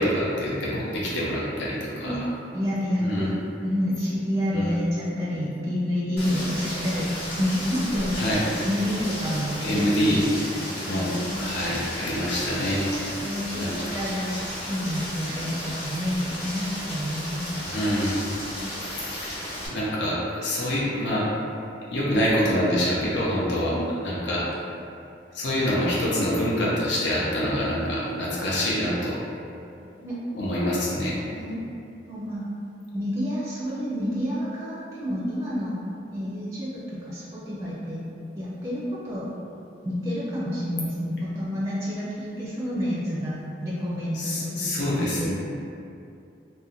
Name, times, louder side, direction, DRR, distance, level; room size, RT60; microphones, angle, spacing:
voice 1, 0.0-2.1 3.0-3.3 4.5-4.7 8.2-8.4 9.6-10.3 10.8-11.1 11.4-12.8 13.6-13.7 17.7-18.2 19.7-21.3 21.9-23.7 24.0-24.5 25.3-29.2 30.3-31.2 44.2-45.3, equal, 80° left, -6 dB, 0.6 m, -25 dB
voice 2, 2.5-3.3 3.6-10.3 10.9-11.5 13.2-17.5 18.6-18.7 23.7-23.8 30.0-30.2 31.3-31.6 32.0-32.4 32.9-35.8 36.1-38.0 38.3-39.3 39.8-45.3, equal, 15° right, -7 dB, 0.4 m, -29 dB
Rain, 6.2-19.7, equal, 65° left, 1.0 m, -34 dB
2.7 x 2.1 x 3.9 m, 2.6 s
head